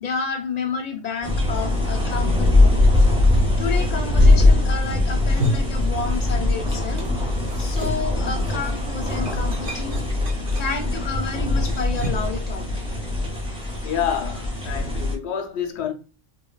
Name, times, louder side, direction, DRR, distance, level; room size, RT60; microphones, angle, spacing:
voice 1, 0.0-3.0 3.6-7.0 7.6-10.0 10.6-12.6, left 5 dB, 45° left, 0.6 m, -30 dB
sound 1, 1.2-15.1, left 2 dB, 5° right, 0.7 m, -21 dB
sound 2, 5.3-6.6 6.8-12.4, equal, 55° right, 1.0 m, -33 dB
voice 2, 13.8-15.9, left 9 dB, 75° left, 0.8 m, -28 dB
3.7 x 2.2 x 2.2 m
omnidirectional pair, 1.2 m